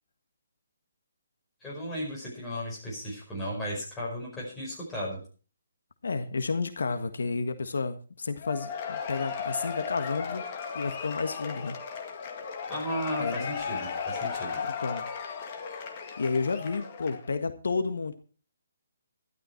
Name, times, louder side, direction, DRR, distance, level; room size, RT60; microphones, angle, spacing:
voice 1, 1.6-5.2 12.7-14.6, equal, 10° left, -4 dB, 5.1 m, -35 dB
voice 2, 6.0-10.4 10.7-11.7 13.2-13.5 14.6-15.0 16.2-18.1, left 4 dB, 80° left, 9 dB, 1.6 m, -31 dB
Cheering / Applause / Crowd, 8.4-17.3, left 6 dB, 30° left, 1.8 m, -36 dB
12.5 x 12.5 x 4.5 m, 0.38 s
hypercardioid pair, 170°, 0 cm